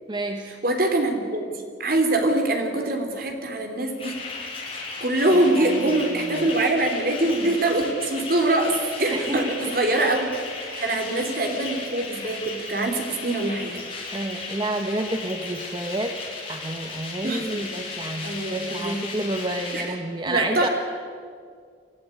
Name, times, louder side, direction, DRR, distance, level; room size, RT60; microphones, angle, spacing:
voice 1, 0.1-0.5 5.3-5.8 6.1-6.5 9.1-9.5 10.7-10.9 14.1-16.1 16.5-20.7, right 1 dB, 25° right, 5 dB, 1.2 m, -30 dB
voice 2, 0.6-4.2 5.0-10.3 10.8-13.8 17.2-17.6 18.2-19.0 19.7-19.8 20.3-20.7, right 2 dB, 55° right, 4 dB, 3.3 m, -24 dB
sound 1, 3.8-19.8, left 4 dB, 30° left, 6.8 m, -36 dB
25.0 x 15.0 x 9.9 m, 2.1 s
head